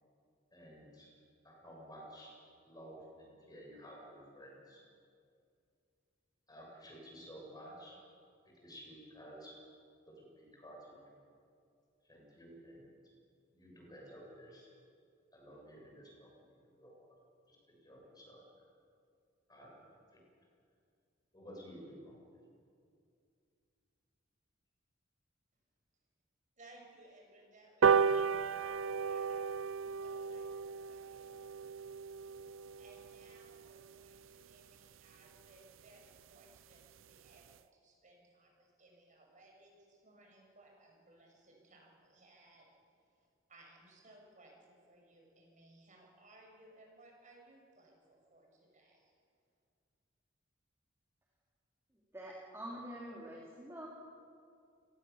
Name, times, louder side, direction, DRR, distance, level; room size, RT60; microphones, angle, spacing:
voice 1, 0.5-1.1 1.4-2.3 2.6-4.8 6.5-8.0 8.5-9.5 10.1-11.2 12.0-13.1 13.5-14.7 15.3-17.2 17.5-18.7 19.5-20.2 21.3-22.4, equal, 20° left, -2 dB, 7.4 m, -53 dB
voice 2, 26.6-29.4 29.8-31.5 32.8-49.1, right 2 dB, 40° right, 0 dB, 6.7 m, -62 dB
sound 1, 27.8-34.6 35.0-35.1 35.4-35.5 35.8-35.9 36.2-36.3 36.6-36.8 37.3-37.4, right 6 dB, 80° right, 0.6 m, -34 dB
voice 3, 52.1-53.9, equal, 15° right, -3 dB, 3.2 m, -46 dB
29.5 x 18.0 x 7.2 m, 2.4 s
head